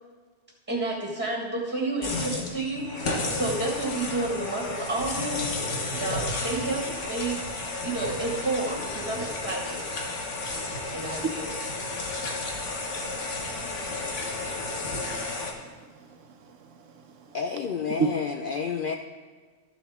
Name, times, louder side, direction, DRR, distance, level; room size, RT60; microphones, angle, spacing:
voice 1, 0.7-5.6 5.9-9.8 10.9-11.5, right 2 dB, 10° right, -2 dB, 1.7 m, -31 dB
sound 1, 2.0-15.5, left 2 dB, 80° left, 1.5 m, -32 dB
voice 2, 12.7-17.4 18.0-18.1, right 5 dB, 85° right, 6 dB, 1.2 m, -36 dB
voice 3, 17.3-18.9, left 6 dB, 60° left, 4 dB, 0.6 m, -30 dB
13.0 x 7.1 x 3.6 m, 1.5 s
omnidirectional pair, 1.2 m